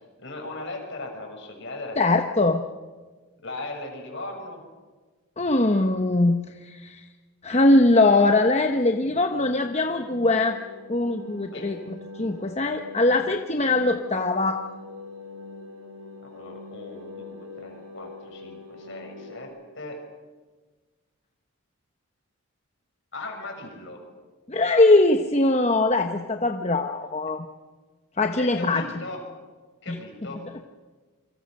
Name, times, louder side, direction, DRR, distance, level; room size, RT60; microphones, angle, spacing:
voice 1, 0.2-2.0 3.4-4.6 11.5-11.7 16.3-19.5 19.8-20.0 23.1-24.0 28.4-29.2 29.8-30.4, left 2 dB, 55° left, 3 dB, 6.6 m, -38 dB
voice 2, 2.0-2.6 5.4-7.1 7.4-10.6 10.9-14.6 24.5-27.4 28.2-28.8 29.9-30.0, left 2 dB, 30° left, 5 dB, 1.0 m, -21 dB
sound 1, 9.2-19.4, left 3 dB, 80° right, 4.5 m, -43 dB
28.0 x 24.5 x 6.6 m, 1.4 s
head